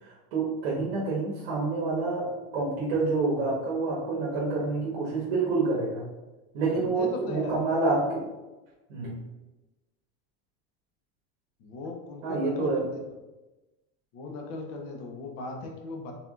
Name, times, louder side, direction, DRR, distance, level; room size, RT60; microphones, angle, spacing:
voice 1, 0.0-6.0 6.5-8.2 8.9-9.2 12.2-12.9, right 3 dB, 70° right, -6 dB, 1.3 m, -28 dB
voice 2, 6.7-7.6 11.6-13.0 14.1-16.1, left 3 dB, 45° left, 2 dB, 0.8 m, -38 dB
4.7 x 3.5 x 2.4 m, 1.1 s
cardioid pair, 170°, 32 cm